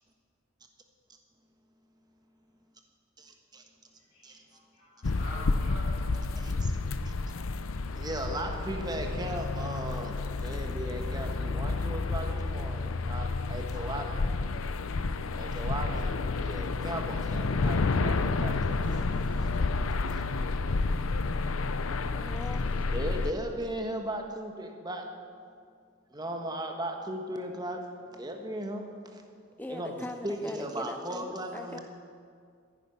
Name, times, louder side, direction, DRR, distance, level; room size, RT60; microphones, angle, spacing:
voice 1, 3.2-3.6 4.2-4.4 6.4-6.7 7.0-7.1 8.0-14.4 15.4-19.1 19.4-19.5 20.1-20.2 22.9-25.1 26.1-29.2 29.7-31.8, right 1 dB, 20° right, 3 dB, 1.3 m, -37 dB
voice 2, 4.1-6.7, left 1 dB, 50° left, -11 dB, 3.3 m, -46 dB
sound 1, 5.0-23.3, left 3 dB, 85° left, 0.6 m, -30 dB
voice 3, 22.1-22.9 29.6-31.8, left 1 dB, 10° left, 7 dB, 0.3 m, -41 dB
14.5 x 10.0 x 5.8 m, 2.2 s
head